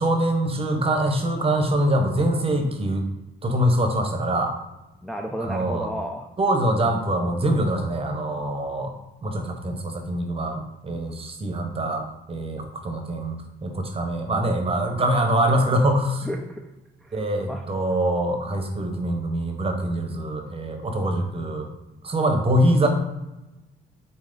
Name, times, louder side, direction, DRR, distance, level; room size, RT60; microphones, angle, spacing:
voice 1, 0.0-3.0 3.4-4.5 5.4-5.9 6.4-8.9 9.2-12.0 12.3-13.4 13.6-16.3 17.1-21.7 22.0-22.9, right 1 dB, 30° right, 4 dB, 0.8 m, -24 dB
voice 2, 5.0-6.3 16.2-16.7 17.0-17.6, equal, ahead, 1 dB, 0.3 m, -32 dB
4.0 x 3.2 x 3.8 m, 0.97 s
cardioid pair, 90°, 20 cm